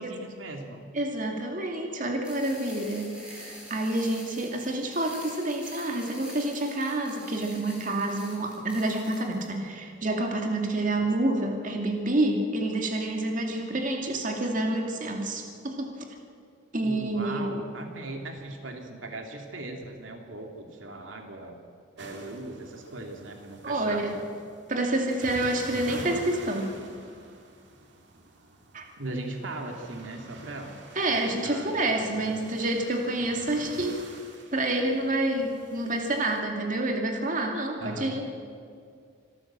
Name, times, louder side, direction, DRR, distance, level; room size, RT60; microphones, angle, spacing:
voice 1, 0.0-0.8 11.0-11.1 16.8-21.6 22.0-24.0 29.0-30.8 31.1-32.4 37.8-38.2, right 2 dB, 90° right, 3 dB, 2.7 m, -39 dB
voice 2, 0.9-16.1 16.7-17.4 23.6-24.1 24.7-26.7 28.7-28.9 31.0-34.0 34.5-38.2, right 1 dB, 45° right, 2 dB, 2.4 m, -28 dB
sound 1, 2.2-9.4, equal, 5° right, 5.6 m, -46 dB
sound 2, 22.0-36.4, right 2 dB, 65° right, 2.6 m, -46 dB
25.5 x 14.0 x 7.5 m, 2.2 s
head